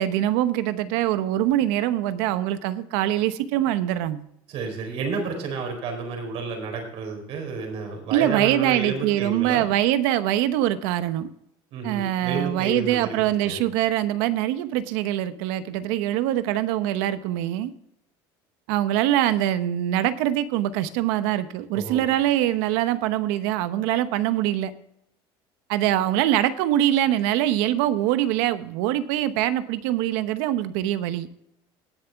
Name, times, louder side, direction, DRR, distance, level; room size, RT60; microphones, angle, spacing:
voice 1, 0.0-4.2 8.1-11.3 11.8-17.7 18.7-24.7 25.7-31.3, right 13 dB, 85° right, 12 dB, 0.9 m, -23 dB
voice 2, 4.5-9.7 11.7-13.2 13.4-13.6 21.7-22.0, right 4 dB, 60° right, 3 dB, 4.5 m, -31 dB
18.5 x 6.9 x 3.5 m, 0.74 s
cardioid pair, 120°, 11 cm